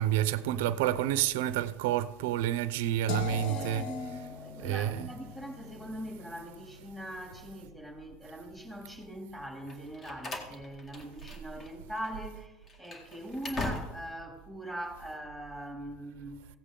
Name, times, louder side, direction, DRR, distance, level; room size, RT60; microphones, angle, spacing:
voice 1, 0.0-3.8 4.6-5.1, right 12 dB, 80° right, 0.5 m, -29 dB
sound 1, 3.1-9.0, left 7 dB, 75° left, 1.1 m, -43 dB
voice 2, 3.3-16.5, equal, 5° left, 3.0 m, -42 dB
Slam, 9.7-11.7 12.0-12.1 12.6-14.2, left 2 dB, 30° left, 2.0 m, -40 dB
16.0 x 8.1 x 3.8 m
supercardioid pair, 105°, 0 cm